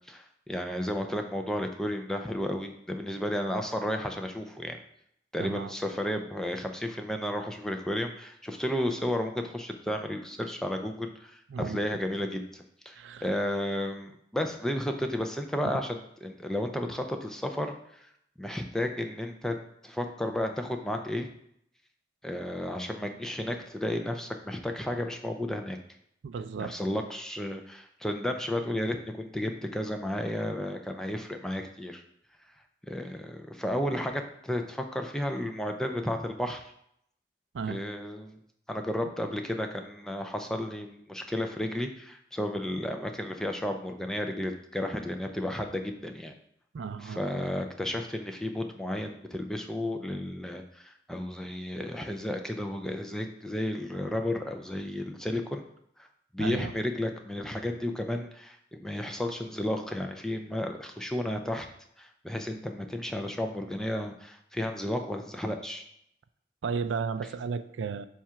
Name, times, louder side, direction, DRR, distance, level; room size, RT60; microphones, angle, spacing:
voice 1, 0.0-4.8 5.3-18.1 18.4-19.6 19.8-21.3 22.2-25.8 26.6-32.0 32.9-36.7 37.7-38.4 38.7-46.3 47.0-55.6 56.0-56.1 56.3-61.7 62.0-65.8, left 1 dB, 5° left, 4 dB, 0.4 m, -33 dB
voice 2, 5.4-5.7 11.5-11.8 12.9-13.3 26.2-26.8 37.5-37.8 46.7-47.2 56.4-56.7 66.6-68.1, right 5 dB, 90° right, 11 dB, 0.4 m, -34 dB
7.3 x 2.4 x 5.6 m, 0.72 s
head